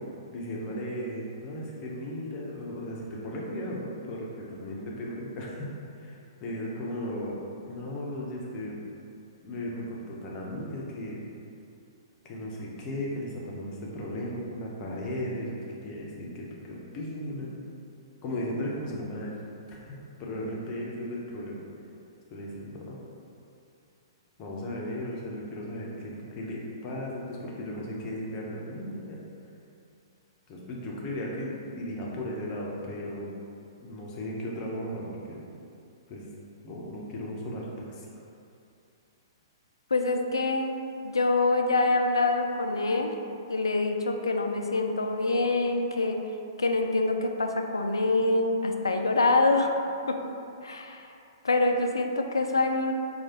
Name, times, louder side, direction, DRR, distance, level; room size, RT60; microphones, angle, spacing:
voice 1, 0.0-5.7 6.0-7.3 7.7-8.8 9.4-11.3 12.3-15.6 15.8-17.6 18.2-19.3 19.7-19.9 20.2-21.6 22.3-23.0 24.4-29.2 30.5-33.4 33.8-35.4 36.1-36.3 36.6-38.1, left 1 dB, 30° left, -4 dB, 0.7 m, -36 dB
voice 2, 39.9-43.1 43.5-46.2 46.6-49.7 50.1-50.2 50.6-51.1 51.4-52.9, left 2 dB, 85° left, 4 dB, 0.3 m, -25 dB
4.6 x 2.4 x 2.8 m, 2.6 s
figure-of-eight pair, 115°, 2 cm